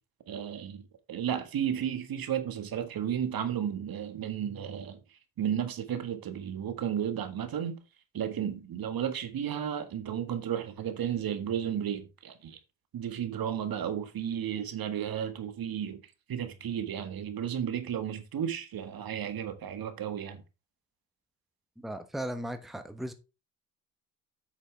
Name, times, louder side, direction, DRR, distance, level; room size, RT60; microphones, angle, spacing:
voice 1, 0.3-5.0 5.4-7.8 8.1-12.6 12.9-16.0 16.3-20.4, right 9 dB, 50° right, 1.8 m, -33 dB
voice 2, 21.8-23.1, right 1 dB, ahead, 1.1 m, -37 dB
8.5 x 6.8 x 3.4 m
hypercardioid pair, 55°, 45 cm